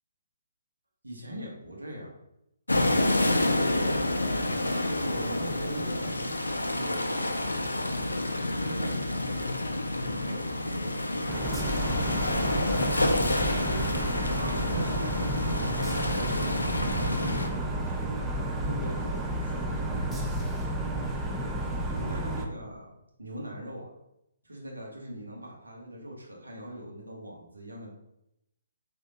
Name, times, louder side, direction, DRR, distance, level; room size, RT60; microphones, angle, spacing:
voice 1, 1.0-2.1 2.9-3.6 4.1-7.2 8.3-12.5 12.9-18.3 18.6-20.5 21.9-22.9 23.2-23.9 24.4-27.9, right 1 dB, 75° right, -1 dB, 1.2 m, -42 dB
sound 1, 2.7-17.5, left 1 dB, 85° left, 0.5 m, -28 dB
sound 2, 11.3-22.5, right 1 dB, 10° right, 0.4 m, -31 dB
3.4 x 2.7 x 3.9 m, 0.82 s
figure-of-eight pair, 135°, 0 cm